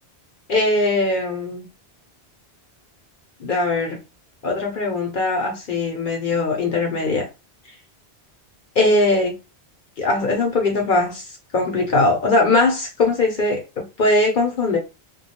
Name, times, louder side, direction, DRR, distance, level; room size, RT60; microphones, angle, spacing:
voice 1, 0.5-1.7 3.4-4.0 4.4-7.3 8.8-9.4 10.0-11.3 11.5-14.8, left 2 dB, 55° left, 0.7 m, -20 dB
2.3 x 2.2 x 2.8 m
omnidirectional pair, 1.1 m